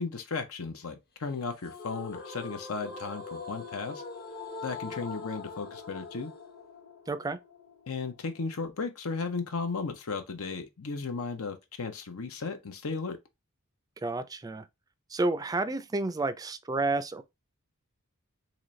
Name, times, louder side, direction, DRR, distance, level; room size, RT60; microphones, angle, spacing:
voice 1, 0.0-4.0 4.6-6.3 7.9-13.2, left 4 dB, 80° left, 0.8 m, -35 dB
sound 1, 1.6-8.7, left 4 dB, 50° left, 0.9 m, -43 dB
voice 2, 7.1-7.4 14.0-14.6 15.1-17.2, right 2 dB, 15° right, 0.4 m, -30 dB
4.0 x 3.0 x 3.1 m
head